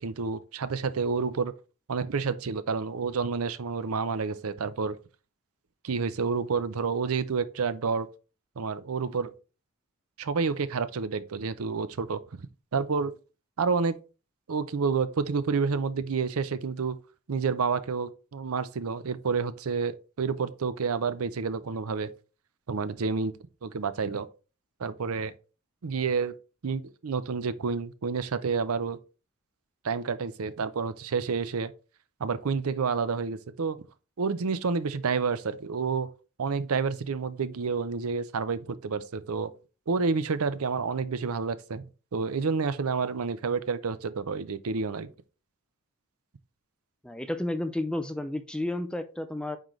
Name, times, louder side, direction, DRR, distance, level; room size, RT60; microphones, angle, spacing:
voice 1, 0.0-1.5 1.9-5.0 5.8-8.1 8.6-9.3 10.2-12.2 12.7-13.1 13.6-14.0 14.5-17.0 17.3-22.1 22.7-23.3 23.6-24.3 24.8-25.3 25.8-26.4 26.6-29.0 29.8-31.7 32.2-33.8 34.2-36.1 36.4-39.5 39.9-41.9 42.1-45.1, right 5 dB, 80° right, 0.6 m, -29 dB
voice 2, 47.0-49.6, left 1 dB, 5° left, 0.5 m, -31 dB
9.0 x 3.9 x 3.2 m
head